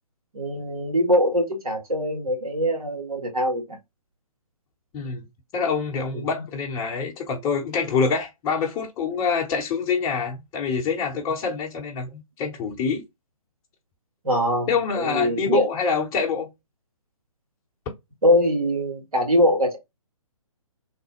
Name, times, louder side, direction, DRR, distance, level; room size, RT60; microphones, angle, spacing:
voice 1, 0.3-3.8 6.1-6.2 14.2-15.7 18.2-19.8, equal, 80° right, 1.9 m, -22 dB
voice 2, 5.5-13.0 14.7-16.5, left 5 dB, 20° left, 0.9 m, -26 dB
3.3 x 2.1 x 3.0 m
figure-of-eight pair, 135°, 18 cm